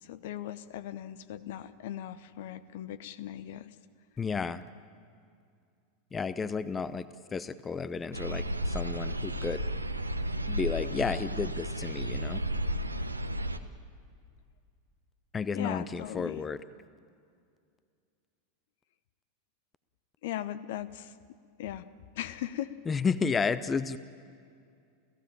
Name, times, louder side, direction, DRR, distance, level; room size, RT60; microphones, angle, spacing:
voice 1, 0.0-3.7 15.5-16.5 20.2-21.1 21.6-21.9 22.1-22.7, left 12 dB, 55° left, 15 dB, 0.8 m, -38 dB
voice 2, 4.2-4.6 6.1-7.1 7.3-9.6 10.5-12.4 15.3-16.6 22.9-24.0, left 5 dB, 20° left, 16 dB, 0.7 m, -32 dB
sound 1, 8.1-13.6, equal, 85° right, 0.9 m, -33 dB
29.5 x 15.5 x 8.9 m, 2.3 s
figure-of-eight pair, 85°, 0 cm